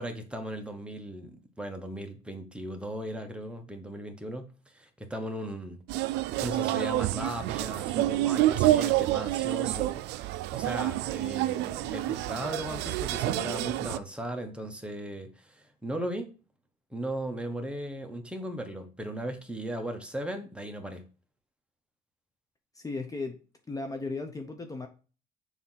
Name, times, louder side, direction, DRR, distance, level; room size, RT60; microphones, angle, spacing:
voice 1, 0.0-5.8 6.4-16.3 16.9-21.1, right 1 dB, 5° right, 1.2 m, -37 dB
sound 1, 5.9-14.0, right 15 dB, 90° right, 0.4 m, -28 dB
voice 2, 22.7-23.4 23.7-24.9, left 3 dB, 20° left, 0.9 m, -35 dB
6.9 x 3.0 x 5.7 m
cardioid pair, 110°, 17 cm